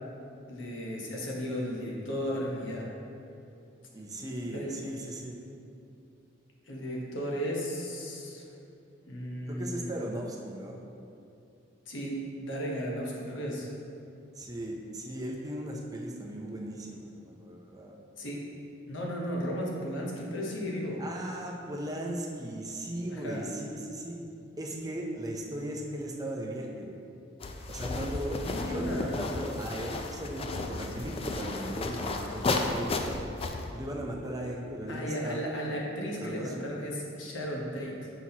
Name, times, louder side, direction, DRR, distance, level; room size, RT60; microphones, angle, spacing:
voice 1, 0.5-2.9 4.5-4.7 6.7-8.4 9.1-9.9 11.9-13.7 18.2-18.4 18.9-21.0 23.1-23.4 28.4-29.2 34.9-38.1, equal, 75° left, -2 dB, 1.0 m, -35 dB
voice 2, 3.9-5.4 9.4-10.8 14.4-18.0 21.0-24.2 24.6-27.0 27.7-33.1 33.7-35.4 35.6-35.8 36.2-36.7, right 1 dB, 20° right, -1 dB, 0.5 m, -37 dB
sound 1, 27.4-33.7, left 2 dB, 30° left, 0.4 m, -33 dB
5.9 x 5.7 x 2.8 m, 2.7 s
head